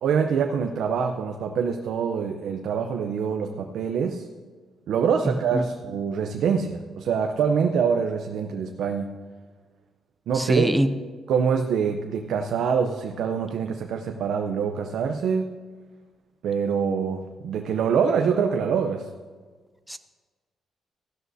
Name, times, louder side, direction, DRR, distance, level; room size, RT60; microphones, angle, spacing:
voice 1, 0.0-4.3 4.9-9.1 10.3-10.7 11.3-15.5 16.4-19.1, right 6 dB, 75° right, 4 dB, 0.6 m, -25 dB
voice 2, 5.2-5.6 10.3-10.9 19.9-20.0, right 1 dB, 5° right, 10 dB, 0.6 m, -24 dB
15.0 x 12.5 x 2.7 m, 1.4 s
cardioid pair, 135°, 0 cm